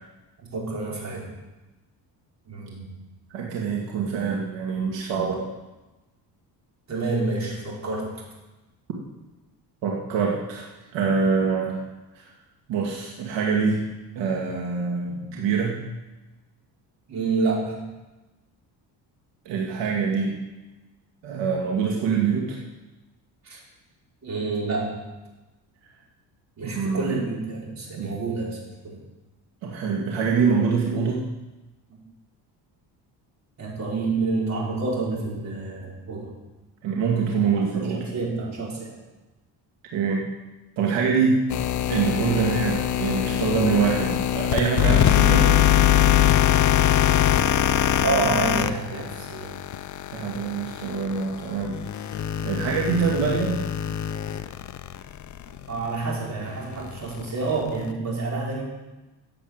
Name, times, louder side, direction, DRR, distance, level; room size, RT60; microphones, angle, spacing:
voice 1, 0.4-1.3 2.4-3.0 6.9-8.2 15.1-15.4 17.1-17.9 23.4-23.6 24.2-25.0 26.6-29.0 33.6-36.4 37.4-39.0 41.0-41.2 43.3-43.5 48.0-49.5 55.7-58.6, right 3 dB, 40° right, -3 dB, 5.1 m, -29 dB
voice 2, 3.3-5.3 9.8-10.7 10.9-11.8 12.1-12.3 12.7-13.8 14.2-15.8 19.5-20.4 21.2-22.6 26.6-27.1 28.0-28.1 29.6-31.3 36.8-38.0 39.9-40.2 40.8-41.4 41.9-45.6 50.1-51.7 52.4-53.6, right 5 dB, 80° right, -2 dB, 2.3 m, -24 dB
sound 1, 41.5-55.6 56.0-56.1 56.7-57.9, left 11 dB, 45° left, 0.6 m, -22 dB
14.0 x 8.1 x 8.1 m, 1.1 s
cardioid pair, 135°, 42 cm